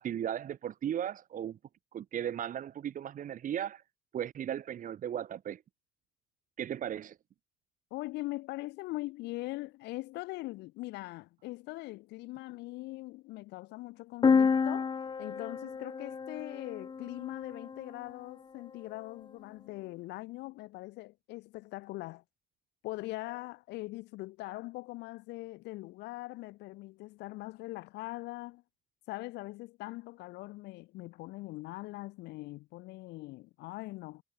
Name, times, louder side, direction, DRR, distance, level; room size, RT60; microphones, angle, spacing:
voice 1, 0.0-1.6 1.9-3.8 4.1-5.6 6.6-7.2, right 10 dB, 50° right, 2.1 m, -36 dB
voice 2, 7.9-14.9 15.2-22.2 22.8-28.6 29.1-34.2, left 20 dB, 90° left, 3.6 m, -41 dB
sound 1, 14.2-18.0, left 5 dB, 25° left, 1.0 m, -30 dB
cardioid pair, 110°, 17 cm